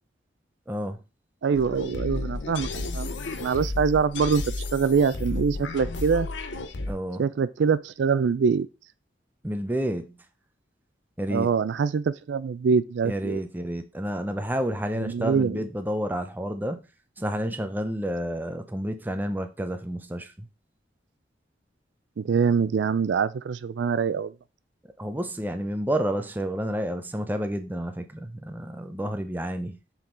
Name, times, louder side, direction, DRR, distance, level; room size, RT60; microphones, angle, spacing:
voice 1, 0.7-1.0 6.9-7.2 9.4-10.2 11.2-11.5 13.0-16.9 17.2-20.5 25.0-29.8, equal, 10° right, 0.5 m, -30 dB
voice 2, 1.4-4.4 4.7-6.3 7.2-8.7 11.3-13.4 14.9-15.7 22.2-24.3, right 6 dB, 75° right, 0.4 m, -24 dB
sound 1, 1.5-6.9, left 2 dB, 80° left, 0.8 m, -32 dB
7.1 x 3.7 x 3.8 m
head